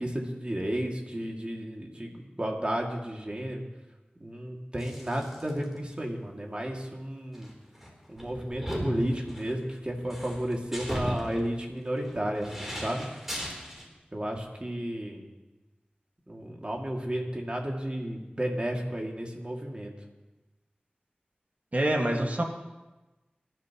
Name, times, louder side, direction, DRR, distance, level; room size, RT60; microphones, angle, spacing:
voice 1, 0.0-3.6 4.2-7.5 8.1-13.0 14.1-15.2 16.3-19.9, right 1 dB, 35° right, 0 dB, 2.4 m, -32 dB
sound 1, 4.8-5.6 5.9-6.0 7.3-13.8, equal, 10° right, 3.8 m, -38 dB
voice 2, 21.7-22.4, right 1 dB, 50° right, 1 dB, 2.0 m, -26 dB
26.0 x 12.0 x 3.1 m, 1.1 s
wide cardioid pair, 60°, 3 cm